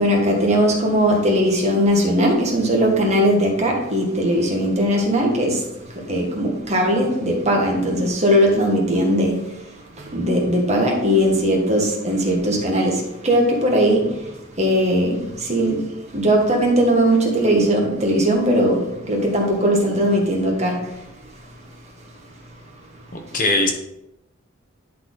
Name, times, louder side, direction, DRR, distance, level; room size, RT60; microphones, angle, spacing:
voice 1, 0.0-21.1, equal, 30° right, 1.5 m, -19 dB
voice 2, 23.1-23.7, left 2 dB, 40° left, 0.9 m, -20 dB
10.5 x 4.2 x 3.9 m
head